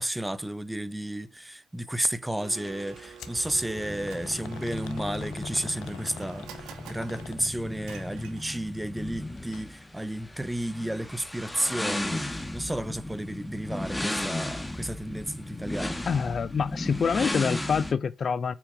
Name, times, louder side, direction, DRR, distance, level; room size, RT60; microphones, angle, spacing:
voice 1, 0.0-16.0, right 1 dB, 5° right, 1.0 m, -32 dB
Domestic sounds home sounds, 2.4-8.9, right 8 dB, 90° right, 2.2 m, -48 dB
sound 1, 2.6-17.9, left 1 dB, 10° left, 1.7 m, -36 dB
sound 2, 3.2-3.4 4.1-7.8 9.4-9.7 10.0-10.1 11.0-11.1, left 10 dB, 80° left, 1.1 m, -46 dB
voice 2, 16.1-18.5, left 6 dB, 45° left, 0.6 m, -26 dB
8.2 x 6.1 x 5.1 m
cardioid pair, 90°, 0 cm